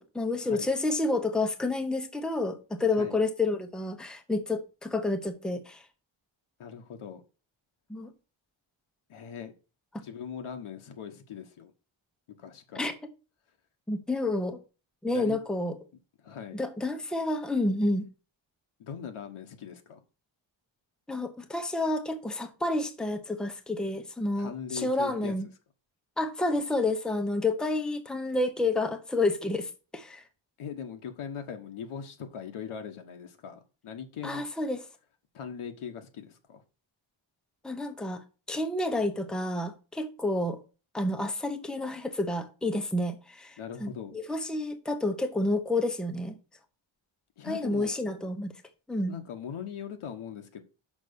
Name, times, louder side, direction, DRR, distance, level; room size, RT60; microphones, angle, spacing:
voice 1, 0.0-5.8 7.9-8.1 12.7-12.9 13.9-14.6 15.0-15.8 16.5-18.1 21.1-25.5 26.2-30.2 34.2-34.8 37.6-38.2 38.5-40.6 40.9-46.3 47.4-48.5 48.9-49.2, left 2 dB, ahead, 0.8 m, -29 dB
voice 2, 6.6-7.2 9.1-9.5 10.0-11.7 12.4-12.9 15.1-15.4 16.2-16.6 18.8-20.0 24.3-25.3 30.6-34.5 35.3-36.6 43.6-44.1 47.4-47.9 49.1-50.6, left 7 dB, 80° left, 1.4 m, -40 dB
6.2 x 5.4 x 6.9 m
wide cardioid pair, 165°, 50 cm